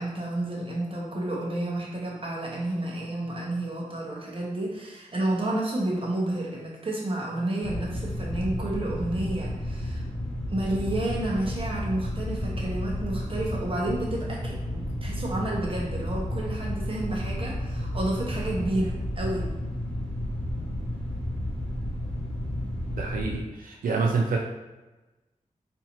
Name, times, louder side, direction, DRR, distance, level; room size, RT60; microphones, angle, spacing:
voice 1, 0.0-10.1 10.5-19.5, right 1 dB, 40° right, -3 dB, 1.0 m, -30 dB
sound 1, 7.6-23.4, left 1 dB, 10° left, 1.3 m, -32 dB
voice 2, 23.0-24.4, right 4 dB, 85° right, 0 dB, 0.4 m, -27 dB
3.9 x 2.6 x 2.9 m, 1.1 s
wide cardioid pair, 95°, 14 cm